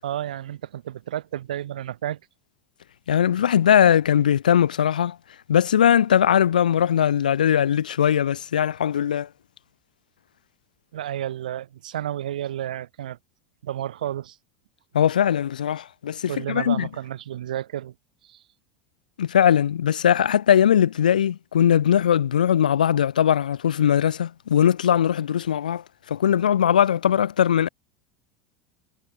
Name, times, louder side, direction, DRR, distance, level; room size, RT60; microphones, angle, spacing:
voice 1, 0.0-2.2 10.9-13.2 13.6-14.4 16.3-17.9 18.2-18.4, right 11 dB, 75° right, 6.6 m, -31 dB
voice 2, 3.1-5.2 5.5-9.3 14.9-16.9 19.2-27.7, left 9 dB, 80° left, 2.4 m, -20 dB
hypercardioid pair, 85°, 4 cm